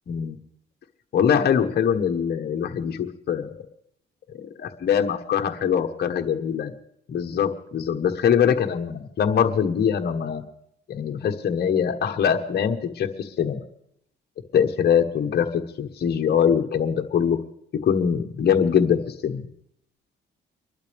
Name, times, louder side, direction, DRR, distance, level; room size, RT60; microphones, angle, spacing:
voice 1, 1.1-3.6 4.4-6.7 7.1-10.4 10.9-13.6 14.5-17.4 17.8-19.4, left 8 dB, 55° left, 4 dB, 1.3 m, -23 dB
24.5 x 12.0 x 3.5 m, 0.71 s
cardioid pair, 90°, 20 cm